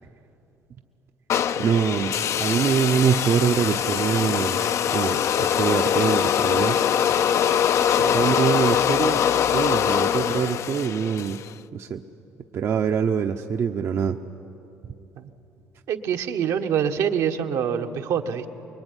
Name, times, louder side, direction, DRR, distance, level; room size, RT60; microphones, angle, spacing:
sound 1, 1.3-11.5, left 9 dB, 55° left, 0.6 m, -23 dB
voice 1, 1.6-4.6 4.9-6.8 8.1-11.4 11.7-12.0 12.5-14.2, right 7 dB, 50° right, 5 dB, 0.9 m, -24 dB
voice 2, 8.0-8.4 15.1-15.3 15.9-18.5, right 8 dB, 75° right, 4 dB, 1.6 m, -25 dB
25.0 x 22.0 x 9.9 m, 2.9 s
cardioid pair, 95°, 6 cm